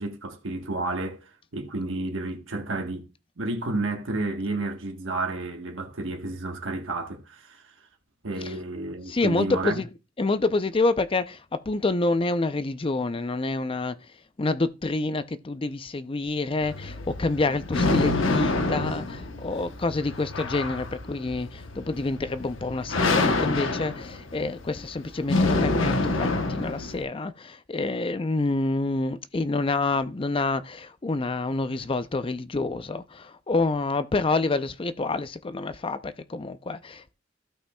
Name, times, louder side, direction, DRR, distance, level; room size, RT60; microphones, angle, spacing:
voice 1, 0.0-3.1 3.4-7.8 8.2-9.8 18.8-18.9, right 2 dB, 85° right, 1.3 m, -31 dB
voice 2, 9.1-9.9 10.2-14.0 14.4-37.1, left 3 dB, 30° left, 0.5 m, -27 dB
sound 1, 16.6-27.0, left 2 dB, 85° left, 1.0 m, -27 dB
15.5 x 5.6 x 2.3 m
head